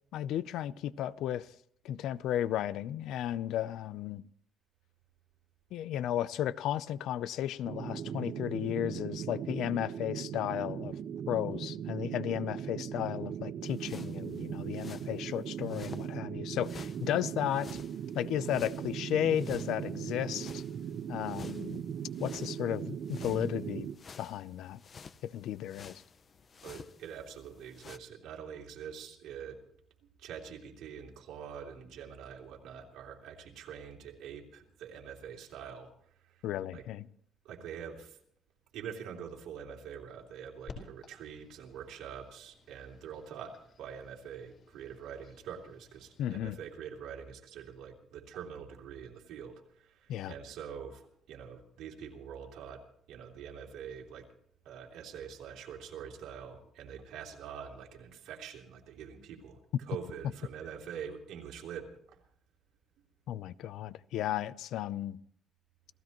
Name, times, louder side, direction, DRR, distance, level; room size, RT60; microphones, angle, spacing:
voice 1, 0.1-1.5 1.8-4.2 5.7-11.0 11.3-17.7 18.1-20.6 21.1-21.8 22.2-23.9 24.2-24.8 25.2-26.0 36.4-37.1 46.2-46.6 50.1-50.3 63.3-65.2, left 11 dB, 75° left, 0.6 m, -34 dB
sound 1, 7.6-24.0, right 8 dB, 55° right, 0.9 m, -39 dB
sound 2, 13.6-16.1 16.6-28.0, left 5 dB, 35° left, 0.7 m, -53 dB
voice 2, 26.6-29.6 30.2-36.5 36.7-36.8 37.4-38.2 38.7-52.8 53.1-54.3 54.6-62.2, right 7 dB, 85° right, 3.2 m, -45 dB
sound 3, 40.7-46.4, left 4 dB, 50° left, 4.3 m, -55 dB
28.5 x 16.0 x 3.1 m
cardioid pair, 155°, 0 cm